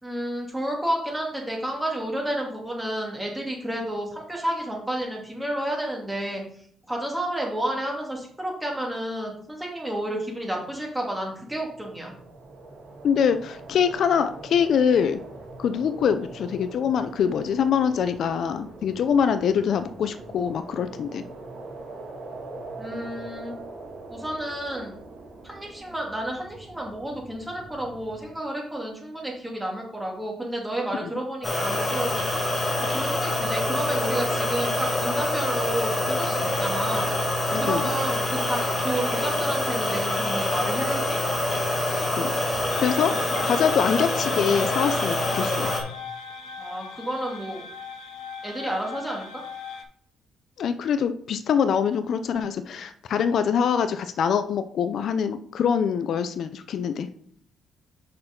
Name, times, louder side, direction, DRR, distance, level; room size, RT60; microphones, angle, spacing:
voice 1, 0.0-6.4 6.9-12.1 22.8-23.6 24.1-24.9 25.4-32.5 32.9-37.1 37.6-41.2 46.6-47.6 48.4-49.2, right 1 dB, 10° right, -1 dB, 2.6 m, -31 dB
sound 1, 11.4-28.3, right 2 dB, 65° right, 2.1 m, -43 dB
voice 2, 13.0-15.2 15.6-21.2 37.5-37.8 42.2-42.3 42.7-45.7 50.6-57.1, left 7 dB, 65° left, 10 dB, 0.5 m, -24 dB
sound 2, 31.4-45.8, left 2 dB, 30° left, 1.8 m, -26 dB
sound 3, 42.7-49.8, left 6 dB, 90° left, 1.0 m, -38 dB
6.5 x 5.8 x 3.8 m, 0.62 s
cardioid pair, 90°, 0 cm